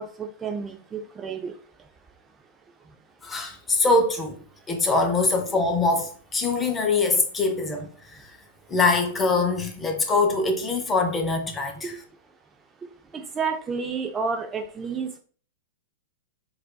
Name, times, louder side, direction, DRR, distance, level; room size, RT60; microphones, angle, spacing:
voice 1, 0.0-1.5 13.1-15.2, right 5 dB, 20° right, 0.4 m, -30 dB
voice 2, 3.2-4.4 4.7-8.3 8.7-12.0, left 3 dB, 15° left, 0.7 m, -23 dB
4.3 x 2.5 x 2.2 m
hypercardioid pair, 110°, 0 cm